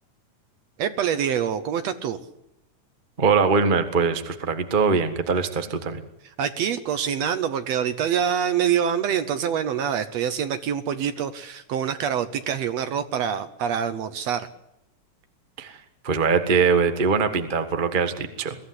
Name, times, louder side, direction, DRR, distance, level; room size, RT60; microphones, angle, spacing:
voice 1, 0.8-2.2 6.4-14.5, right 8 dB, 65° right, 11 dB, 1.9 m, -25 dB
voice 2, 3.2-6.0 15.6-18.6, right 5 dB, 30° right, 8 dB, 0.9 m, -22 dB
22.5 x 15.0 x 9.8 m, 0.86 s
omnidirectional pair, 3.6 m